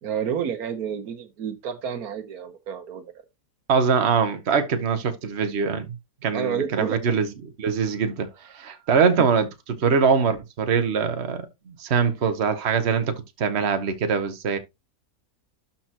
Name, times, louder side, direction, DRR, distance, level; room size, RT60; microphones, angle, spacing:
voice 1, 0.0-3.1 6.3-7.2 9.2-9.3, right 7 dB, 85° right, 1.6 m, -30 dB
voice 2, 3.7-5.9 6.2-7.3 7.6-8.3 8.5-14.6, right 5 dB, 50° right, 1.3 m, -23 dB
12.0 x 4.4 x 2.9 m
omnidirectional pair, 1.5 m